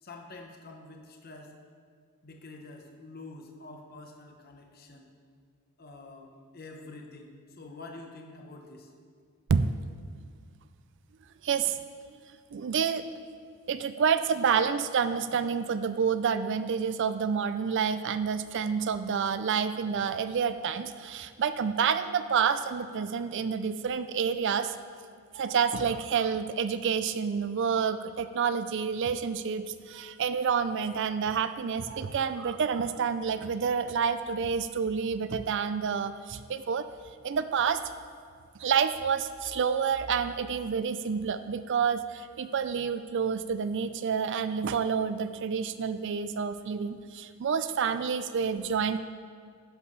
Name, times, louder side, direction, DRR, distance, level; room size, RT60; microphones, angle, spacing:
voice 1, 0.0-1.6 2.2-5.2 5.8-8.9, left 2 dB, 45° left, 2 dB, 1.0 m, -47 dB
voice 2, 11.4-11.8 12.5-13.0 13.7-24.7 25.3-36.8 37.2-37.8 38.6-49.0, right 6 dB, 55° right, 12 dB, 0.4 m, -28 dB
11.0 x 11.0 x 3.3 m, 2.1 s
head